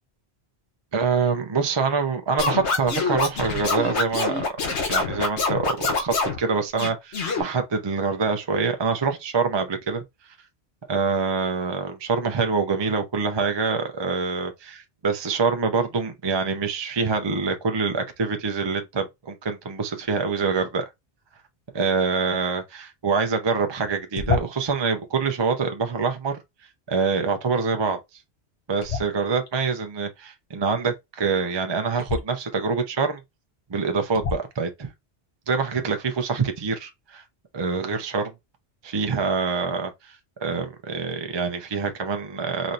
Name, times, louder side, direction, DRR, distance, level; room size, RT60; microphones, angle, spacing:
voice 1, 0.9-10.0 10.9-20.9 21.7-26.4 26.9-28.0 28.7-33.2 33.7-34.9 35.5-37.2 37.5-38.3 38.8-42.7, right 5 dB, 35° right, 0.5 m, -25 dB
Scratching (performance technique), 2.4-6.4 6.8-7.4, left 4 dB, 90° left, 1.3 m, -25 dB
sound 1, 24.1-24.8 28.8-29.5 32.0-32.2 33.2-33.3 34.1-34.6, left 5 dB, 40° left, 0.9 m, -28 dB
4.1 x 3.1 x 2.6 m
omnidirectional pair, 1.1 m